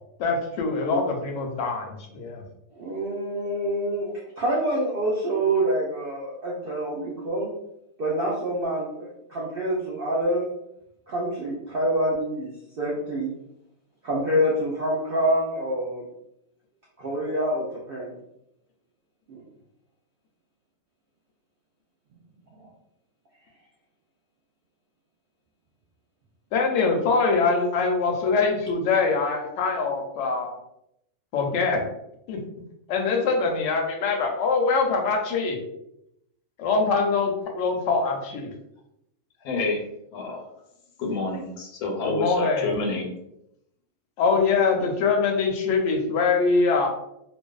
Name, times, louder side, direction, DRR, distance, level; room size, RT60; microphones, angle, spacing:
voice 1, 0.2-2.4 26.5-30.5 31.3-31.9 32.3-32.4 32.9-35.6 36.6-38.5 42.0-42.7 44.2-46.9, left 4 dB, 65° left, 2 dB, 0.8 m, -23 dB
voice 2, 2.7-7.5 8.0-10.5 11.1-12.5 12.8-13.3 14.0-16.0 17.0-18.1 19.3-19.4, right 1 dB, 80° right, -5 dB, 0.5 m, -26 dB
voice 3, 39.4-39.8 40.1-40.4 41.0-43.1, left 3 dB, 90° left, 0 dB, 1.1 m, -28 dB
2.5 x 2.1 x 2.3 m, 0.80 s
omnidirectional pair, 1.5 m